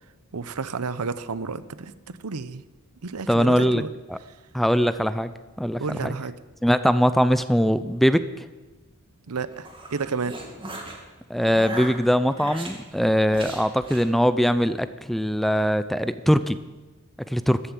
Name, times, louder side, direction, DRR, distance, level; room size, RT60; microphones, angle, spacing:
voice 1, 0.3-2.6 3.0-3.9 5.8-6.3 9.3-10.4, right 4 dB, 85° right, 14 dB, 0.8 m, -31 dB
voice 2, 3.3-3.8 4.1-4.2 4.5-5.3 5.6-6.2 6.6-8.2 11.3-16.6 17.3-17.6, equal, ahead, 12 dB, 0.5 m, -21 dB
sound 1, 9.4-11.0 11.4-12.7 13.3-14.1, right 2 dB, 25° right, 2.5 m, -37 dB
14.5 x 12.5 x 7.4 m, 1.2 s
head